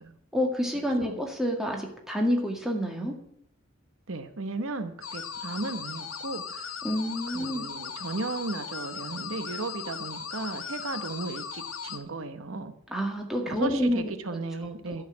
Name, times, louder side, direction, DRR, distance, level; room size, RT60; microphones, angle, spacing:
voice 1, 0.3-3.1 6.8-7.7 12.9-14.1 14.9-15.0, equal, ahead, 1 dB, 1.9 m, -28 dB
voice 2, 4.1-6.7 7.3-12.7 13.5-15.0, right 3 dB, 70° right, 9 dB, 1.0 m, -35 dB
sound 1, 5.0-12.0, left 6 dB, 70° left, 1.3 m, -38 dB
11.5 x 6.6 x 9.4 m, 0.69 s
head